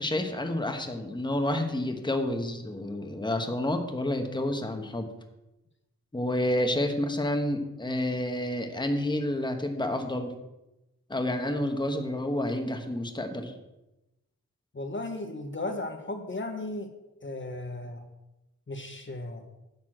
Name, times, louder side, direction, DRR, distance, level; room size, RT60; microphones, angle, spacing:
voice 1, 0.0-5.1 6.1-10.3 11.1-13.5, left 1 dB, 15° left, 5 dB, 1.2 m, -29 dB
voice 2, 14.7-16.9 17.2-18.0 18.7-19.4, left 2 dB, 35° left, 5 dB, 1.1 m, -35 dB
10.5 x 4.2 x 7.6 m, 0.95 s
wide cardioid pair, 80°, 33 cm